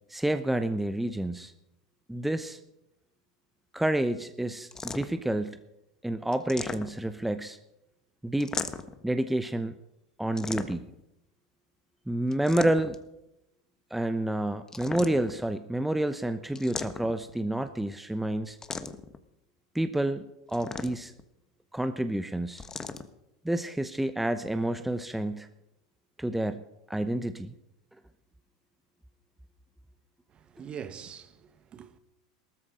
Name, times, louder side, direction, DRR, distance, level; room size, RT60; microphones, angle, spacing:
voice 1, 0.1-1.5 2.1-2.6 3.7-5.6 6.0-7.6 8.2-8.6 9.0-9.7 10.2-10.9 12.1-13.0 13.9-18.6 19.7-21.1 21.7-22.6 23.4-25.5 26.2-26.6 26.9-27.5, right 1 dB, 5° right, 0.9 m, -29 dB
sound 1, 4.7-5.3 6.3-7.2 8.4-9.0 10.4-11.0 12.3-13.1 14.7-15.4 16.6-17.3 18.6-19.2 20.5-21.2 22.6-23.1, left 4 dB, 15° left, 1.3 m, -37 dB
voice 2, 30.3-32.0, right 8 dB, 35° right, 1.5 m, -43 dB
18.5 x 13.5 x 5.1 m
hypercardioid pair, 90°, 3 cm